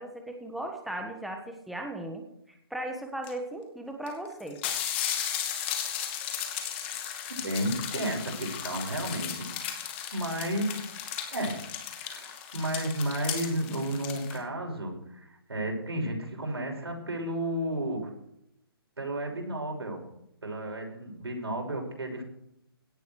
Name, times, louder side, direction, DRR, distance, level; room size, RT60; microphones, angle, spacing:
voice 1, 0.0-4.6, right 1 dB, ahead, 3 dB, 1.4 m, -37 dB
sound 1, 3.2-3.3 4.1-4.2 4.4-14.4, left 9 dB, 25° left, 2.5 m, -35 dB
voice 2, 7.3-9.8 10.1-10.9 11.3-11.6 12.0-18.1 19.0-20.0 20.4-22.2, right 1 dB, 90° right, 1 dB, 6.7 m, -32 dB
17.5 x 11.5 x 4.7 m, 0.79 s
hypercardioid pair, 155°, 13 cm